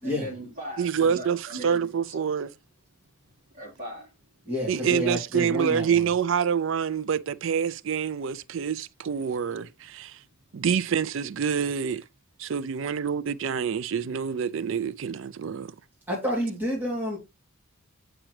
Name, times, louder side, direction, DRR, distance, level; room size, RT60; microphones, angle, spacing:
voice 1, 0.0-2.2 3.5-4.1, right 1 dB, 40° right, 4.0 m, -39 dB
voice 2, 0.8-2.5 4.7-10.2 10.5-12.0 12.4-15.7, right 7 dB, 60° right, 0.4 m, -27 dB
voice 3, 4.5-5.9 16.1-17.2, equal, 10° right, 2.8 m, -29 dB
8.9 x 6.0 x 3.2 m
head